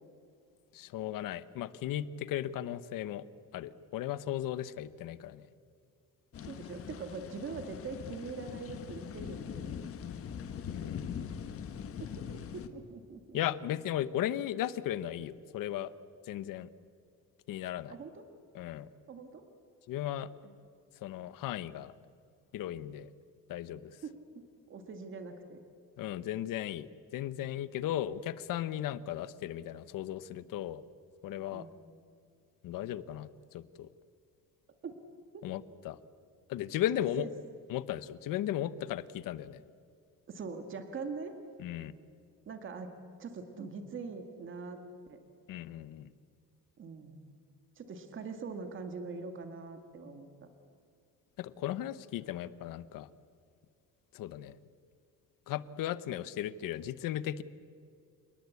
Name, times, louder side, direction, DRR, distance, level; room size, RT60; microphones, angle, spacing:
voice 1, 0.7-3.3 3.5-5.5 10.7-11.3 13.3-15.9 16.2-16.7 17.5-18.0 18.5-18.9 19.9-20.3 21.0-21.9 22.5-23.1 23.5-24.0 26.0-30.8 31.2-31.7 32.6-33.9 35.4-36.0 36.5-37.3 37.7-39.6 41.6-41.9 45.5-46.1 51.4-53.1 54.1-54.6 55.5-57.4, left 12 dB, 85° left, 16 dB, 1.0 m, -36 dB
sound 1, 6.3-12.7, left 8 dB, 45° left, 1.4 m, -42 dB
voice 2, 6.4-9.7 12.0-13.4 17.9-18.3 19.1-19.4 20.4-20.5 24.0-25.6 31.5-31.7 34.8-34.9 35.3-35.5 37.2-37.3 40.3-41.4 42.5-42.9 43.2-44.8 45.1-45.2 46.8-47.2 47.8-50.5, right 4 dB, 40° right, 7 dB, 1.9 m, -43 dB
29.0 x 19.5 x 8.4 m, 2.4 s
cardioid pair, 180°, 32 cm